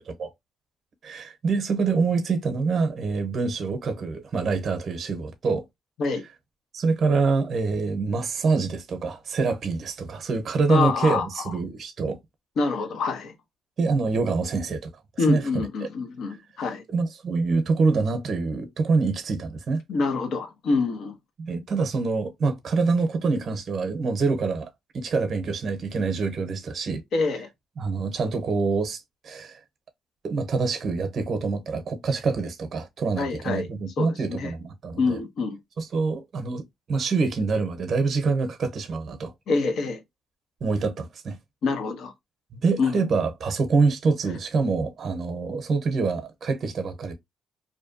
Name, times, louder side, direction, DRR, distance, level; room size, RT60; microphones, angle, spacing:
voice 1, 1.0-5.7 6.7-12.2 13.8-14.9 15.3-15.6 16.9-19.8 21.4-27.0 27.8-29.6 30.2-35.2 35.8-36.6 36.9-39.3 40.6-41.4 42.5-47.1, right 4 dB, 50° right, 0.7 m, -25 dB
voice 2, 10.7-11.5 12.6-13.3 15.2-16.8 19.9-21.1 27.1-27.5 33.2-33.7 34.0-34.5 35.0-35.6 39.5-40.0 41.6-42.1 42.8-43.0, left 4 dB, 70° left, 0.8 m, -26 dB
2.7 x 2.2 x 2.5 m
cardioid pair, 90°, 0 cm